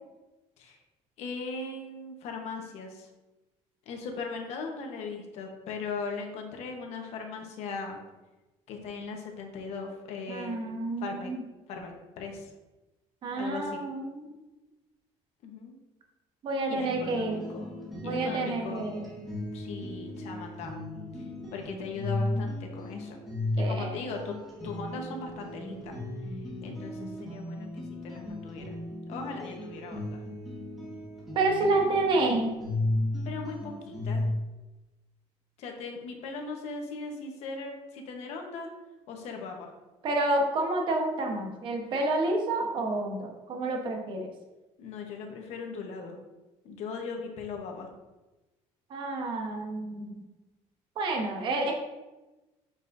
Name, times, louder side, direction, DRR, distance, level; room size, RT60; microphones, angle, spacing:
voice 1, 1.2-3.1 3.9-8.0 8.7-10.6 11.0-11.3 11.7-12.5 13.4-13.8 15.4-15.7 16.7-17.7 18.0-18.9 19.5-20.7 21.5-23.2 23.6-24.3 24.6-26.0 26.3-28.7 29.1-30.2 33.2-34.2 35.6-38.7 39.1-39.7 44.8-46.2 46.6-47.9, left 4 dB, 65° left, 2 dB, 1.1 m, -39 dB
voice 2, 10.3-11.4 13.2-14.3 16.4-17.5 18.0-19.0 23.6-23.9 31.3-32.5 40.0-44.3 48.9-50.2 51.0-51.8, right 2 dB, 40° right, 2 dB, 1.0 m, -29 dB
sound 1, 16.8-34.3, left 1 dB, ahead, 1.7 m, -35 dB
7.5 x 5.0 x 2.6 m, 1.1 s
cardioid pair, 175°, 12 cm